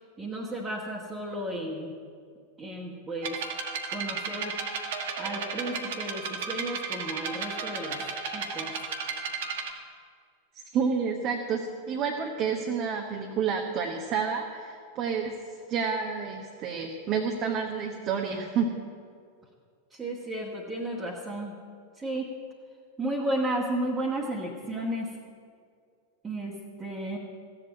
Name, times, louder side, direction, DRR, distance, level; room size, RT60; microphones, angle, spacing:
voice 1, 0.2-2.0 2.6-3.4 3.9-4.6 5.2-8.7 19.9-21.6 22.0-22.3 23.0-25.2 26.2-27.2, right 1 dB, 15° right, -4 dB, 1.8 m, -33 dB
sound 1, 3.2-9.7, right 5 dB, 55° right, 1.5 m, -34 dB
voice 2, 10.7-15.3 15.7-18.8, right 6 dB, 35° right, 1 dB, 1.2 m, -29 dB
15.5 x 8.0 x 8.6 m, 2.2 s
figure-of-eight pair, 90°, 0 cm